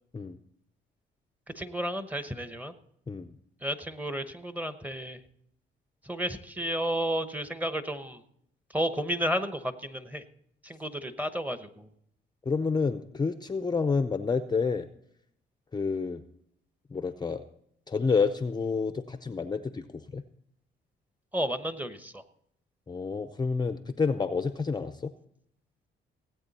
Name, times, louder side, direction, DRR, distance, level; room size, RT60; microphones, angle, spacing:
voice 1, 1.5-2.7 3.6-5.2 6.0-8.2 8.7-10.2 10.6-11.9 21.3-22.2, equal, 10° right, 11 dB, 1.0 m, -32 dB
voice 2, 12.5-14.9 15.7-16.2 16.9-17.4 17.9-20.2 22.9-25.1, left 5 dB, 20° left, 11 dB, 0.6 m, -29 dB
17.5 x 8.5 x 4.2 m, 0.71 s
cardioid pair, 90°, 20 cm